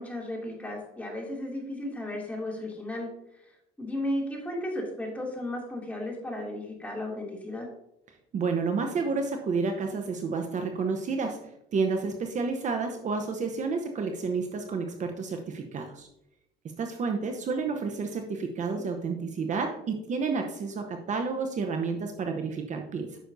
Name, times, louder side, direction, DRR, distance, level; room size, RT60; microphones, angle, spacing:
voice 1, 0.0-3.1 3.8-7.7 18.7-18.9, left 1 dB, 10° left, -2 dB, 2.6 m, -34 dB
voice 2, 8.3-11.4 11.7-16.1 16.8-23.2, right 4 dB, 45° right, 5 dB, 0.8 m, -30 dB
9.2 x 6.2 x 2.7 m, 0.81 s
cardioid pair, 110°, 17 cm